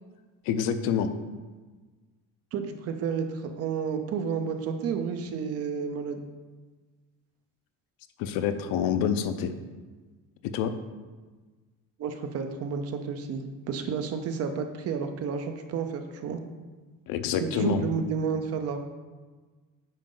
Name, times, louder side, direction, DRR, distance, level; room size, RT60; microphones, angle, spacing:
voice 1, 0.4-1.1 8.2-9.5 10.5-10.7 17.1-17.8, left 8 dB, 70° left, 9 dB, 0.7 m, -27 dB
voice 2, 2.5-6.2 12.0-16.4 17.4-18.8, right 6 dB, 40° right, 7 dB, 0.6 m, -31 dB
9.0 x 5.2 x 3.8 m, 1.3 s
cardioid pair, 180°, 38 cm